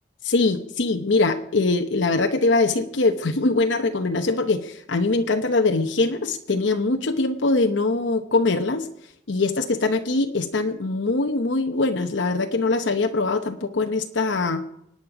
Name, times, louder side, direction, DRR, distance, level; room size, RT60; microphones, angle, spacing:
voice 1, 0.2-8.9 9.3-14.6, left 3 dB, 75° left, 5 dB, 0.9 m, -22 dB
25.0 x 9.4 x 4.9 m, 0.77 s
head